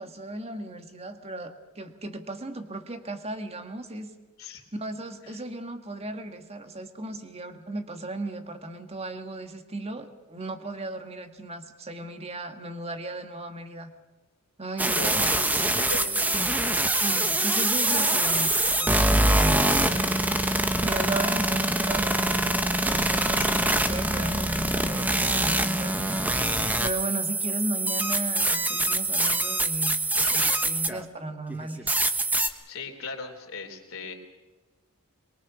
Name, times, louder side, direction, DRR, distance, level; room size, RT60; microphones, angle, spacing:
voice 1, 0.0-4.1 4.7-13.9 14.6-15.6 16.9-20.2 20.8-22.6 22.9-26.2 26.8-31.9, right 2 dB, 30° right, 7 dB, 1.8 m, -36 dB
sound 1, 14.8-31.0 31.5-32.5, right 1 dB, 5° right, 1.1 m, -24 dB
voice 2, 14.9-16.3 23.3-23.5 32.7-34.1, left 3 dB, 65° left, 3 dB, 3.6 m, -38 dB
23.0 x 22.5 x 6.2 m, 1.2 s
head